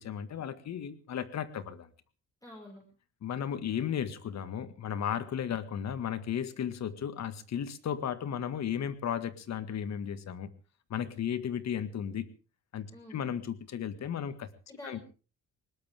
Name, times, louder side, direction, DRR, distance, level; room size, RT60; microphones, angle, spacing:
voice 1, 0.0-1.9 3.2-10.5 10.9-12.3 12.7-14.5 14.8-15.0, left 8 dB, 60° left, 12 dB, 1.9 m, -35 dB
voice 2, 2.4-2.8 12.9-13.2 14.7-15.0, left 1 dB, 10° left, -1 dB, 6.1 m, -47 dB
20.0 x 19.0 x 3.6 m, 0.35 s
cardioid pair, 90°, 30 cm